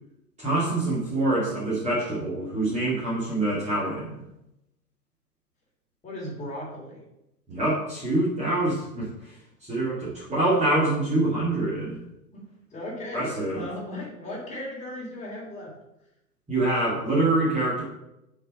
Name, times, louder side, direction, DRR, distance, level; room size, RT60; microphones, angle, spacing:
voice 1, 0.4-4.2 7.5-9.3 9.6-12.0 13.1-13.6 16.5-17.8, right 2 dB, 15° right, -7 dB, 2.3 m, -25 dB
voice 2, 6.0-7.0 12.3-15.7, left 1 dB, 15° left, -4 dB, 3.5 m, -37 dB
6.7 x 5.0 x 6.6 m, 0.89 s
figure-of-eight pair, 115°, 49 cm